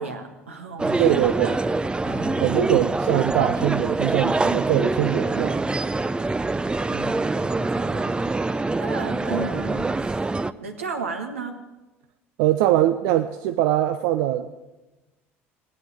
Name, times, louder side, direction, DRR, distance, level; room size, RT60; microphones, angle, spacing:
voice 1, 0.0-1.6 2.0-2.5 6.9-10.2 10.6-11.6, right 4 dB, 85° right, 4 dB, 1.5 m, -34 dB
sound 1, 0.8-10.5, right 3 dB, 15° right, 0.5 m, -25 dB
voice 2, 1.0-1.6 2.4-5.6 12.4-14.5, right 13 dB, 65° right, 8 dB, 0.6 m, -22 dB
17.0 x 9.1 x 8.5 m, 1.1 s
figure-of-eight pair, 60°, 7 cm